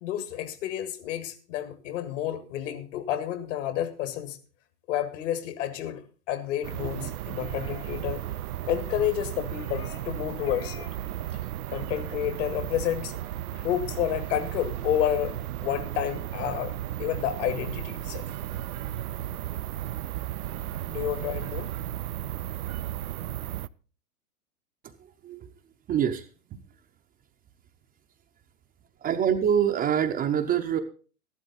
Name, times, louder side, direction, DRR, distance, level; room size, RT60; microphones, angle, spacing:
voice 1, 0.0-4.4 4.9-6.0 6.3-8.2 8.6-10.9 11.7-13.2 13.5-18.3 20.9-21.7, left 11 dB, 55° left, 11 dB, 1.9 m, -30 dB
sound 1, 6.6-23.7, right 13 dB, 70° right, 0.6 m, -34 dB
sound 2, 7.4-8.5 8.9-9.2 9.6-10.1 10.4-11.0 11.3-11.5, left 8 dB, 30° left, 1.1 m, -49 dB
voice 2, 25.0-25.5 25.9-26.3 29.0-30.8, right 8 dB, 20° right, 5 dB, 0.7 m, -25 dB
13.5 x 12.0 x 4.1 m, 0.37 s
hypercardioid pair, 115°, 45 cm